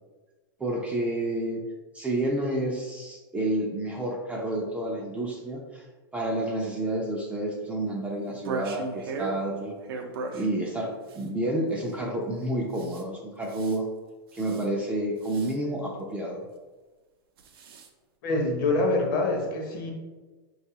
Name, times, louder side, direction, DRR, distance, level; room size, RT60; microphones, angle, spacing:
voice 1, 0.6-1.6 1.9-5.8 6.1-9.7 10.3-13.9 14.3-16.4, right 1 dB, 10° right, -1 dB, 0.4 m, -29 dB
sound 1, 8.2-9.4 9.8-10.5 11.1-11.3 12.7-13.0 13.4-13.8 14.3-14.7 15.2-15.5 17.4-17.9, right 4 dB, 75° right, 0.5 m, -36 dB
voice 2, 18.2-19.9, left 2 dB, 60° left, 2 dB, 0.7 m, -25 dB
3.8 x 2.3 x 2.8 m, 1.3 s
hypercardioid pair, 135°, 13 cm